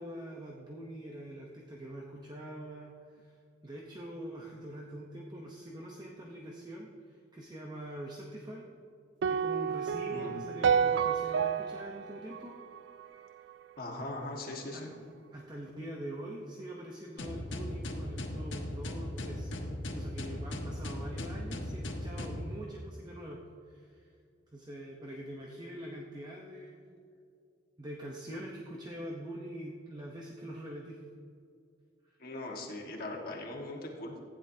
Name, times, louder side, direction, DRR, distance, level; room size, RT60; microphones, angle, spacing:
voice 1, 0.0-3.3 3.6-8.6 9.2-12.5 14.7-14.9 15.3-19.5 19.9-23.4 23.7-24.1 24.5-26.8 27.8-31.0, right 1 dB, 20° right, -1 dB, 0.9 m, -44 dB
sound 1, 9.2-13.5, right 7 dB, 70° right, 0.4 m, -30 dB
voice 2, 10.1-10.6 13.8-14.9 32.2-34.2, left 2 dB, 50° left, -1 dB, 1.6 m, -40 dB
sound 2, 17.2-22.5, left 1 dB, 85° left, 1.3 m, -38 dB
15.5 x 10.0 x 2.8 m, 2.4 s
head